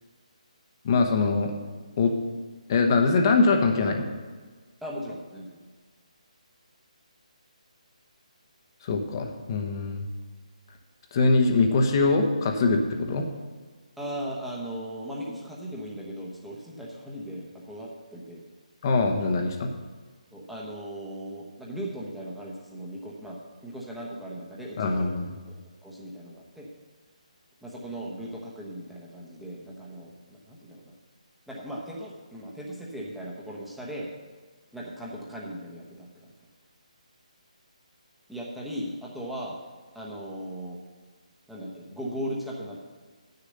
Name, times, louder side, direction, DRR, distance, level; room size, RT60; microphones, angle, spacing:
voice 1, 0.8-1.5 2.0-2.1 2.7-4.1 8.8-10.1 11.1-13.2 18.8-19.7 24.8-25.3, left 3 dB, 35° left, 4 dB, 1.0 m, -23 dB
voice 2, 4.8-5.6 14.0-18.4 20.3-25.1 25.5-26.7 27.6-31.0 31.5-34.1 34.7-36.3 38.3-39.6 39.9-40.8 41.5-42.8, equal, ahead, -5 dB, 1.1 m, -38 dB
9.0 x 6.7 x 6.5 m, 1.4 s
hypercardioid pair, 160°, 4 cm